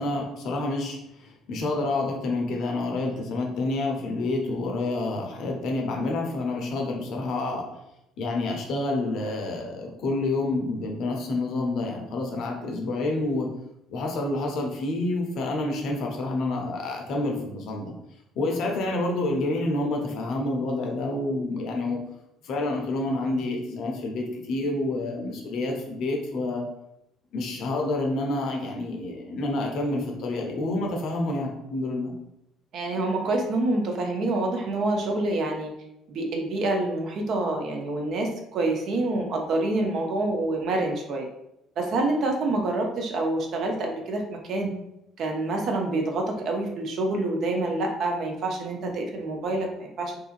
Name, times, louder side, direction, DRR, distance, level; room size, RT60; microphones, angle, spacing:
voice 1, 0.0-7.7 8.2-13.5 13.9-17.9 18.4-22.0 22.4-26.6 27.3-32.1, left 2 dB, 55° left, 1 dB, 0.5 m, -28 dB
voice 2, 32.7-35.7 36.1-41.3 41.8-44.7 45.2-50.2, right 2 dB, 55° right, 2 dB, 0.5 m, -27 dB
2.6 x 2.4 x 2.4 m, 0.83 s
figure-of-eight pair, 50°, 0 cm